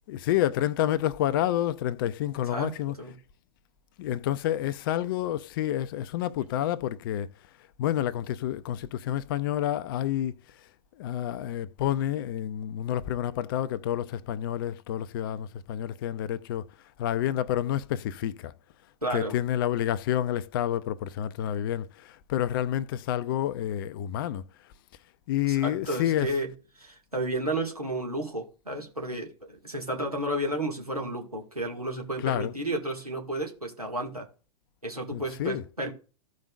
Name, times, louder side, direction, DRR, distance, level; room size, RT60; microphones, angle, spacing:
voice 1, 0.0-3.1 4.0-7.3 7.8-10.6 10.9-16.7 17.0-18.5 19.1-24.4 25.3-26.4 32.2-32.6 35.1-35.7, left 11 dB, 40° left, 0.5 m, -29 dB
voice 2, 2.5-3.2 19.0-19.4 25.5-26.5 26.8-34.3 34.8-35.9, right 1 dB, 90° right, 2.0 m, -32 dB
15.0 x 5.2 x 2.5 m
figure-of-eight pair, 105°, 19 cm